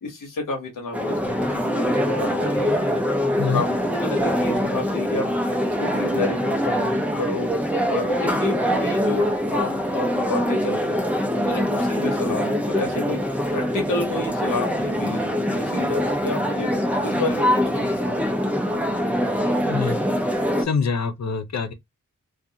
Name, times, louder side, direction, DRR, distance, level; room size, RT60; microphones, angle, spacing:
voice 1, 0.0-3.0 3.4-5.3 5.8-7.5 7.9-18.2, left 3 dB, 70° left, 1.0 m, -31 dB
sound 1, 0.9-20.7, equal, 5° right, 0.8 m, -23 dB
voice 2, 19.7-20.0 20.6-21.7, left 5 dB, 55° left, 0.6 m, -25 dB
2.4 x 2.4 x 2.7 m
cardioid pair, 45°, 32 cm